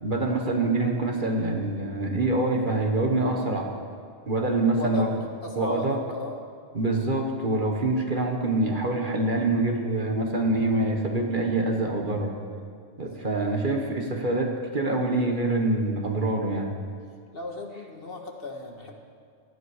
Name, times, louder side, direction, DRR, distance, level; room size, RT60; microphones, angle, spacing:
voice 1, 0.0-3.7 4.3-5.1 5.5-6.0 6.7-12.3 13.0-16.7, right 2 dB, 40° right, 2 dB, 1.5 m, -25 dB
voice 2, 4.8-5.1 5.4-6.8 13.0-13.3 17.3-18.9, left 2 dB, 50° left, 2 dB, 1.7 m, -36 dB
17.5 x 13.0 x 4.9 m, 2.2 s
omnidirectional pair, 1.3 m